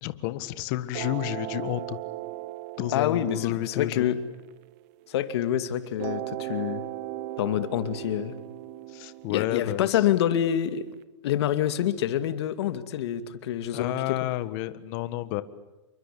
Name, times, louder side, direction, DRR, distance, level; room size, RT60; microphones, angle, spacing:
voice 1, 0.0-2.0 2.8-4.1 8.9-10.0 13.7-15.4, left 15 dB, 40° left, 14 dB, 1.6 m, -31 dB
sound 1, 0.9-5.3 6.0-10.9, right 15 dB, 40° right, 1.2 m, -38 dB
voice 2, 2.9-4.2 5.1-6.8 7.4-8.4 9.3-10.9 11.2-14.2, left 11 dB, 60° left, 11 dB, 2.4 m, -27 dB
28.5 x 23.5 x 8.6 m, 1.1 s
hypercardioid pair, 150°, 16 cm